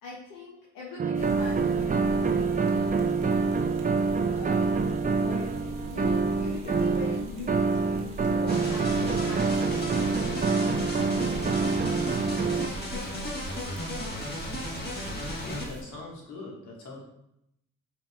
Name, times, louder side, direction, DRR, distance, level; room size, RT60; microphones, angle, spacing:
voice 1, 0.0-3.5 4.3-4.6 5.2-9.5 9.8-13.8 14.0-14.4, left 3 dB, 85° left, -4 dB, 0.8 m, -43 dB
sound 1, 1.0-12.7, right 4 dB, 25° right, 0.4 m, -26 dB
sound 2, 1.1-15.8, right 3 dB, 90° right, 0.8 m, -41 dB
sound 3, 8.5-15.7, left 1 dB, 30° left, 1.5 m, -35 dB
voice 2, 15.1-17.0, left 2 dB, 65° left, -3 dB, 1.6 m, -42 dB
5.4 x 3.9 x 2.3 m, 0.81 s
supercardioid pair, 50°, 32 cm